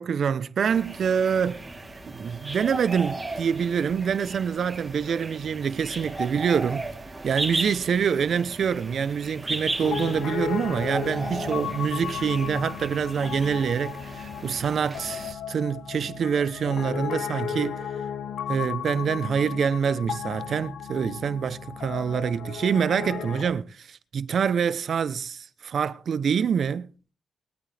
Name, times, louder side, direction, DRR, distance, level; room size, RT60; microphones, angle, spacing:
voice 1, 0.0-1.6 2.1-6.8 7.2-17.8 18.5-26.9, right 7 dB, 65° right, 0.9 m, -26 dB
sound 1, 0.6-15.3, right 2 dB, 20° right, 3.5 m, -36 dB
Piano, 9.8-23.5, left 8 dB, 80° left, 1.3 m, -34 dB
22.0 x 8.9 x 3.5 m
cardioid pair, 85°, 0 cm